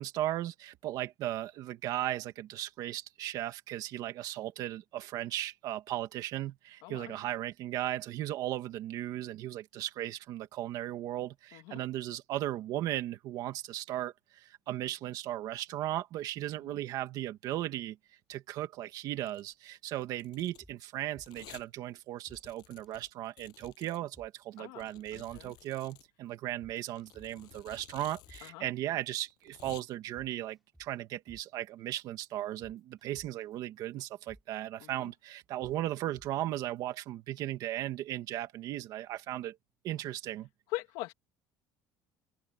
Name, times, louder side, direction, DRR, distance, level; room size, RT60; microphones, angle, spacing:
voice 1, 0.0-18.0 18.3-39.6 39.8-40.5, right 14 dB, 50° right, 2.0 m, -37 dB
voice 2, 6.8-7.2 11.5-11.9 16.6-16.8 24.6-25.5 28.4-28.7 34.8-35.1 40.7-41.1, left 19 dB, 75° left, 2.4 m, -42 dB
Domestic sounds home sounds, 19.2-19.5 20.0-20.7 21.3-21.7 22.0-22.1 22.3-24.0 24.8-26.1 27.0-28.5 28.8-28.9 29.3-29.8, left 19 dB, 60° left, 7.2 m, -54 dB
sound 1, 19.9-20.0 20.4-21.5 21.9-22.0 22.3-22.4 22.9-23.0 23.4-23.8 24.1-24.6 24.9-25.0 25.3-25.4 25.9-26.0 26.4-27.5 27.9-28.0 28.3-28.4 28.9-29.0 29.4-29.8 30.1-31.0 31.3-31.4 31.9-32.0 32.4-33.5 33.9-34.0 34.3-34.4 34.9-35.0 35.4-35.8 36.1-36.6 36.9-37.0, equal, ahead, 4.4 m, -58 dB
open air
cardioid pair, 175°, 8 cm